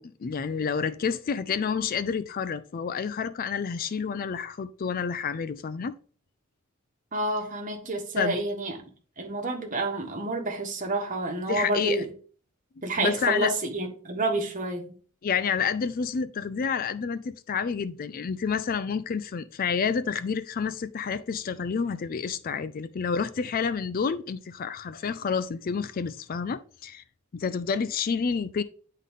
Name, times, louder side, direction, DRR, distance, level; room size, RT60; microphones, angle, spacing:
voice 1, 0.0-5.9 8.2-8.4 11.5-12.1 13.0-13.5 15.2-27.0 27.3-28.6, left 6 dB, 40° left, 0.4 m, -29 dB
voice 2, 7.1-8.9 9.2-12.1 12.8-14.9, right 2 dB, 40° right, 1.3 m, -29 dB
9.7 x 3.8 x 3.6 m
head